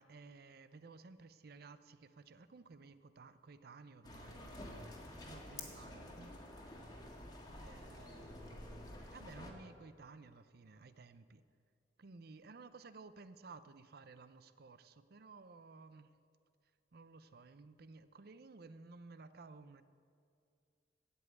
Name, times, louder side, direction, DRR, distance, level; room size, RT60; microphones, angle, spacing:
voice 1, 0.0-6.2 7.6-11.4 12.0-16.1 16.9-19.8, right 4 dB, 60° right, 13 dB, 0.6 m, -56 dB
sound 1, 4.0-9.5, left 1 dB, 25° left, 1.6 m, -50 dB
16.0 x 5.5 x 8.8 m, 2.4 s
head